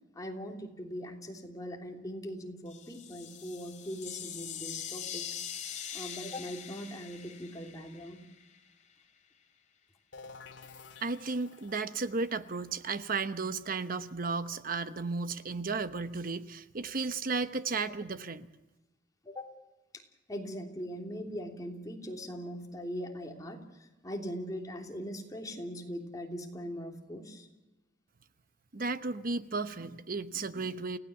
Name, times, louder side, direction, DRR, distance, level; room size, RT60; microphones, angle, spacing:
voice 1, 0.1-5.4 5.9-8.2 19.2-19.5 19.9-20.0 20.3-27.5, equal, 20° left, 1 dB, 3.2 m, -41 dB
sound 1, 2.7-8.6, left 9 dB, 40° left, 3.0 m, -43 dB
sound 2, 10.1-15.7, left 4 dB, 85° left, 2.2 m, -54 dB
voice 2, 11.0-18.5 28.7-31.0, right 4 dB, 50° right, 11 dB, 1.0 m, -34 dB
29.5 x 16.5 x 7.1 m, 1.0 s
head